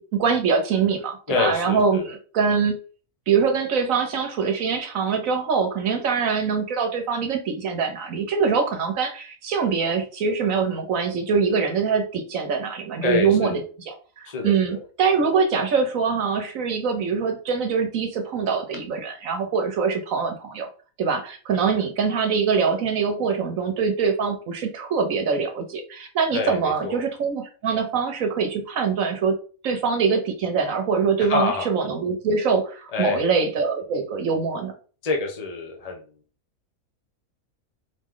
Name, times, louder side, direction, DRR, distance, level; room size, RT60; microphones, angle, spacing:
voice 1, 0.1-2.8 3.3-13.6 13.9-20.7 21.0-29.3 29.6-34.7, right 5 dB, 70° right, 5 dB, 1.2 m, -23 dB
voice 2, 1.3-2.1 13.0-13.6 14.2-14.8 26.3-27.0 31.3-31.7 32.9-33.3 35.0-36.0, left 4 dB, 30° left, 2 dB, 0.9 m, -27 dB
4.6 x 3.1 x 3.7 m, 0.40 s
omnidirectional pair, 1.5 m